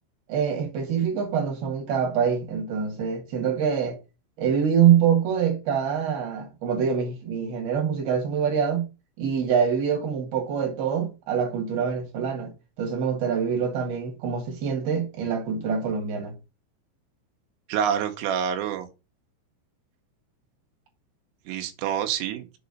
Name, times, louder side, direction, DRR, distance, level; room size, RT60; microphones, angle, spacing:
voice 1, 0.3-4.0 4.4-8.8 9.2-12.5 12.8-16.4, right 7 dB, 55° right, 3.7 m, -25 dB
voice 2, 17.7-18.9 21.5-22.5, right 8 dB, 85° right, 3.6 m, -27 dB
7.9 x 4.0 x 6.5 m
omnidirectional pair, 5.8 m